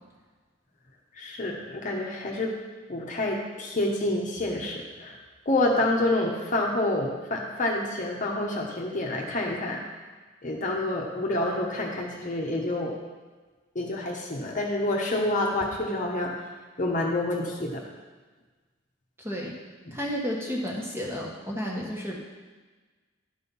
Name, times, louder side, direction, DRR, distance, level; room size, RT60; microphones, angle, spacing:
voice 1, 1.2-2.5 2.9-5.1 5.5-9.8 10.4-12.9 13.7-16.3 16.8-17.8 19.9-20.0, left 1 dB, 40° left, -1 dB, 1.1 m, -28 dB
voice 2, 19.2-19.5 19.9-22.2, equal, 10° right, -3 dB, 1.4 m, -32 dB
11.0 x 4.4 x 5.4 m, 1.3 s
head